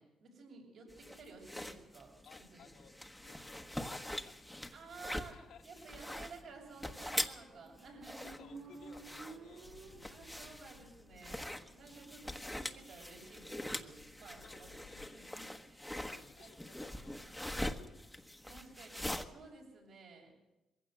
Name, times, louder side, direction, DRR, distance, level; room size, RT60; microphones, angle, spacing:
voice 1, 0.0-2.2 2.5-2.6 4.7-8.6 10.1-14.7 15.1-15.8 16.4-17.3 18.5-20.4, right 4 dB, 65° right, -1 dB, 6.8 m, -54 dB
sound 1, 0.9-19.2, left 1 dB, 5° left, 1.3 m, -43 dB
voice 2, 2.3-2.9 3.2-5.9 8.0-9.7 11.7-12.3 13.7-14.0 14.3-15.4 16.0-17.9 18.3-18.6, left 7 dB, 70° left, 4 dB, 1.9 m, -62 dB
Motorcycle, 7.3-10.9, right 3 dB, 85° right, 5.7 m, -53 dB
sound 2, 9.6-15.1, left 7 dB, 90° left, 1.2 m, -63 dB
21.5 x 15.5 x 8.0 m, 1.0 s
cardioid pair, 90°, 0 cm